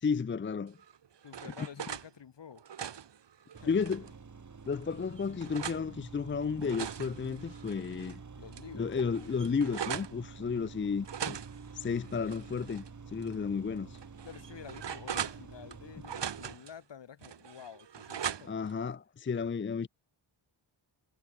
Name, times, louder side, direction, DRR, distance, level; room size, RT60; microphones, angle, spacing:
voice 1, 0.0-0.8 1.6-1.7 3.7-4.0 4.7-8.2 8.7-11.4 11.7-14.0 18.5-19.9, left 5 dB, 25° left, 0.5 m, -33 dB
sound 1, 0.8-2.1 2.5-4.2 4.7-5.8 6.4-8.2 8.5-8.6 8.9-10.2 11.0-12.9 13.2-13.3 13.9-15.8 16.0-16.7 17.2-18.7, right 8 dB, 65° right, 1.9 m, -41 dB
voice 2, 1.2-2.6 3.5-3.9 8.4-9.1 13.1-13.6 14.2-18.6, left 8 dB, 65° left, 2.6 m, -50 dB
sound 2, 3.5-16.5, right 5 dB, 40° right, 3.6 m, -49 dB
wide cardioid pair, 150°, 46 cm